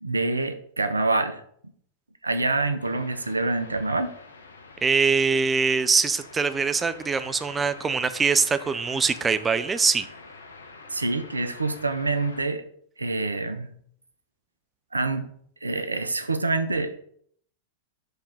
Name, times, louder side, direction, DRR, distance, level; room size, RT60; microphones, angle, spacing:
voice 1, 0.0-1.4 2.2-4.1 10.9-12.6 13.0-13.7 14.9-15.3 15.6-17.0, right 3 dB, 90° right, 10 dB, 0.7 m, -26 dB
sound 1, 2.8-12.4, left 3 dB, 80° left, 0.9 m, -46 dB
voice 2, 4.8-10.1, right 5 dB, 15° right, 12 dB, 0.5 m, -23 dB
6.8 x 3.7 x 5.7 m, 0.63 s
figure-of-eight pair, 95°, 0 cm